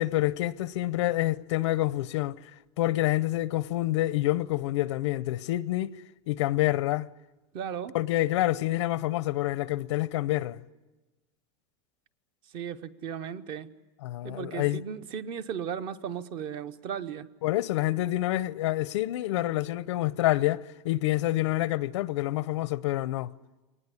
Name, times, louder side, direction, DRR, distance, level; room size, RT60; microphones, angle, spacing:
voice 1, 0.0-2.4 2.8-6.0 6.3-7.1 7.9-10.6 14.0-14.8 17.4-23.3, left 16 dB, 85° left, 0.7 m, -27 dB
voice 2, 7.5-7.9 12.5-13.7 14.2-17.3, right 8 dB, 35° right, 0.8 m, -36 dB
23.5 x 19.5 x 9.7 m
supercardioid pair, 175°, 15 cm